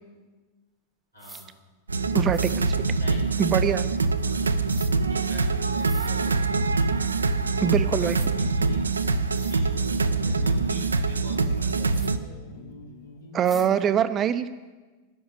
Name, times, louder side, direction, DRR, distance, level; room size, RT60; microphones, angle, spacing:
voice 1, 1.1-1.5 3.0-3.2 4.2-4.5 5.1-6.9 7.6-12.1, left 2 dB, 90° left, -5 dB, 3.4 m, -45 dB
sound 1, 1.2-1.5 2.3-2.6 4.7-4.9 5.7-6.1 7.6-7.7 8.1-8.3 9.0-9.1 9.3-9.6 11.9-12.1 13.4-13.7, right 3 dB, 10° right, 1.0 m, -45 dB
sound 2, 1.9-12.2, right 4 dB, 75° right, 0.5 m, -24 dB
voice 2, 2.1-2.8 3.4-3.8 7.6-8.2 13.3-14.4, right 9 dB, 30° right, 12 dB, 0.6 m, -23 dB
sound 3, 7.1-13.8, left 3 dB, 65° left, 1.6 m, -47 dB
9.8 x 6.3 x 8.8 m, 1.3 s
figure-of-eight pair, 90°, 0 cm